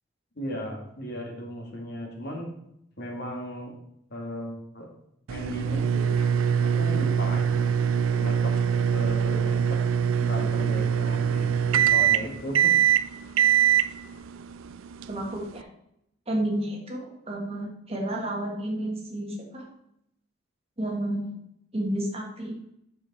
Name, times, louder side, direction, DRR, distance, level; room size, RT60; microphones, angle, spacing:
voice 1, 0.4-2.5 3.0-3.8 4.1-4.9 5.3-6.2 6.6-7.7 8.1-8.6 8.9-9.9 10.2-11.5 11.9-12.7, equal, 55° left, 1 dB, 1.9 m, -36 dB
sound 1, 5.3-15.6, right 8 dB, 85° right, 0.4 m, -23 dB
voice 2, 15.1-15.6 16.3-19.7 20.8-21.3 21.7-22.7, right 1 dB, 30° right, 1 dB, 1.6 m, -31 dB
7.6 x 6.4 x 4.1 m, 0.77 s
head